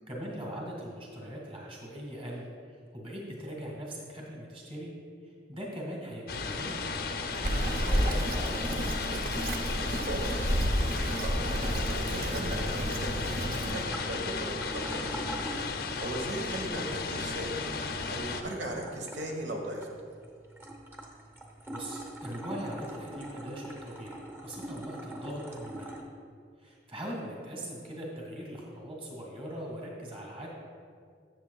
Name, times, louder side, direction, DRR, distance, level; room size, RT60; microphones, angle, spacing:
voice 1, 0.1-4.9 5.5-7.0 7.3-8.6 21.7-25.9 26.6-30.5, equal, 30° right, -2 dB, 1.8 m, -41 dB
sound 1, 6.3-18.4, left 4 dB, 55° left, 0.5 m, -35 dB
Bird vocalization bird call bird song, 7.4-13.7, equal, 50° right, 0.7 m, -30 dB
voice 2, 9.7-10.5 10.8-15.2 15.8-19.9, right 1 dB, 80° right, 2 dB, 1.2 m, -38 dB
sound 2, 13.7-26.0, right 1 dB, 10° right, 0.8 m, -44 dB
13.0 x 7.2 x 2.3 m, 2.2 s
head